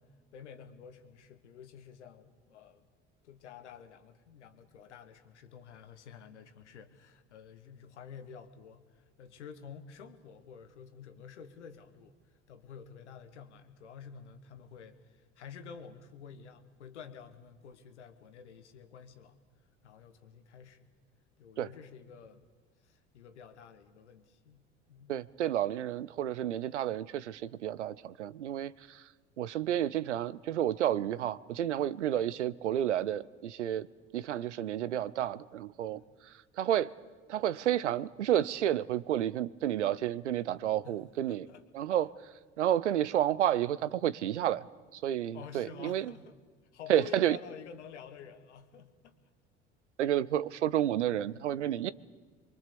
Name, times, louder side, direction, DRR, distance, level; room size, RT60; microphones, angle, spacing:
voice 1, 0.0-2.9 3.2-19.4 19.8-20.9 21.4-22.5 22.8-25.2 35.9-36.1 40.8-41.0 41.3-41.9 45.3-46.4 46.7-49.2, left 7 dB, 80° left, 9 dB, 1.6 m, -50 dB
voice 2, 25.1-29.1 29.4-33.9 34.1-36.9 37.3-41.5 41.7-42.1 42.6-44.6 44.9-46.1 46.9-47.4 50.0-51.9, right 11 dB, 85° right, 19 dB, 0.6 m, -31 dB
24.5 x 23.0 x 6.9 m, 1.4 s
hypercardioid pair, 65°, 34 cm